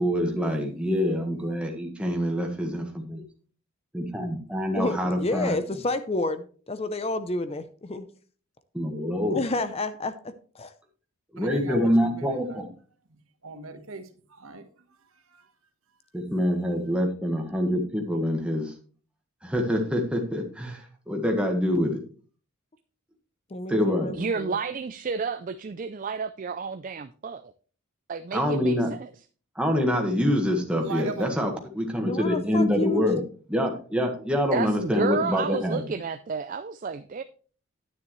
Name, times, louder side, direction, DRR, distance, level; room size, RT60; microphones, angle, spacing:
voice 1, 0.0-3.2 3.9-5.6 8.7-9.4 11.3-12.7 16.1-18.7 19.4-22.0 23.7-24.1 28.3-28.9 29.5-33.2 33.5-35.8, equal, 5° right, 2 dB, 1.5 m, -26 dB
voice 2, 4.7-8.0 9.3-10.7 23.5-24.6 32.1-33.0, left 2 dB, 25° left, 11 dB, 0.5 m, -30 dB
voice 3, 11.4-12.6 13.4-14.7 15.3-15.5 30.8-31.4, right 4 dB, 70° right, 8 dB, 1.3 m, -38 dB
voice 4, 24.1-27.5 28.1-29.1 34.5-37.2, right 5 dB, 35° right, 12 dB, 0.3 m, -31 dB
9.8 x 9.5 x 3.1 m, 0.41 s
head